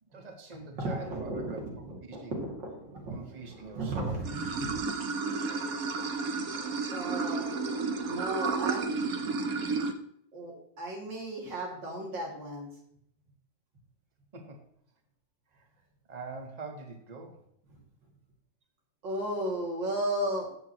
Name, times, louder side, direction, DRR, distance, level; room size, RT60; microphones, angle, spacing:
voice 1, 0.0-2.4 3.1-4.2 14.3-14.6 15.5-15.7 16.1-17.4, right 3 dB, 25° right, 3 dB, 1.5 m, -44 dB
voice 2, 0.8-4.2 4.6-4.7 6.9-7.5 8.1-8.9 10.3-12.7 19.0-20.5, right 1 dB, 90° right, -1 dB, 3.2 m, -35 dB
Water / Sink (filling or washing), 4.2-9.9, right 4 dB, 60° right, 1.3 m, -32 dB
14.0 x 7.9 x 3.1 m, 0.72 s
omnidirectional pair, 1.9 m